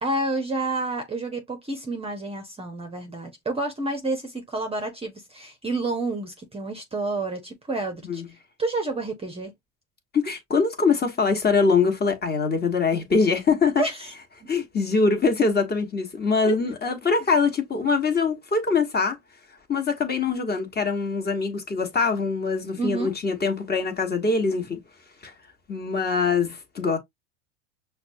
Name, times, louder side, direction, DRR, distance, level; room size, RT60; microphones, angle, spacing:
voice 1, 0.0-8.2 8.6-9.5 13.8-14.1 16.5-16.6 22.8-23.1, right 2 dB, 15° right, 0.7 m, -29 dB
voice 2, 10.1-13.8 14.5-19.2 19.7-24.8 25.2-25.3 25.7-27.0, left 4 dB, 25° left, 1.2 m, -23 dB
5.8 x 2.3 x 2.6 m
supercardioid pair, 110°, 41 cm